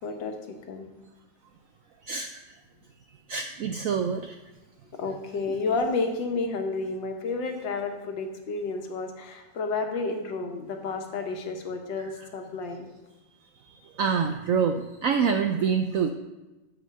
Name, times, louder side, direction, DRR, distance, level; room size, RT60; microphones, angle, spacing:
voice 1, 0.0-0.9 5.0-12.9, left 3 dB, 85° left, 4 dB, 1.7 m, -31 dB
voice 2, 3.3-4.4 12.0-12.1 14.0-16.1, right 6 dB, 75° right, 6 dB, 0.7 m, -26 dB
8.6 x 4.9 x 6.6 m, 1.1 s
omnidirectional pair, 1.9 m